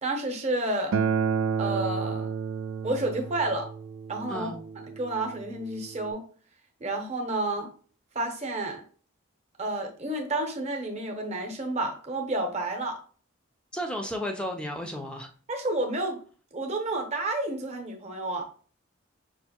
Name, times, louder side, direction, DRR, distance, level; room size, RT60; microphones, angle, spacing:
voice 1, 0.0-1.0 1.6-2.3 2.8-3.7 4.1-4.5 5.0-6.2 6.8-7.7 8.1-8.8 9.6-13.0 15.5-16.2 16.5-18.4, right 2 dB, 30° right, 0.7 m, -30 dB
Acoustic guitar, 0.9-6.1, right 6 dB, 70° right, 0.4 m, -31 dB
voice 2, 13.7-15.3, equal, 5° left, 0.4 m, -33 dB
5.5 x 2.5 x 2.8 m
head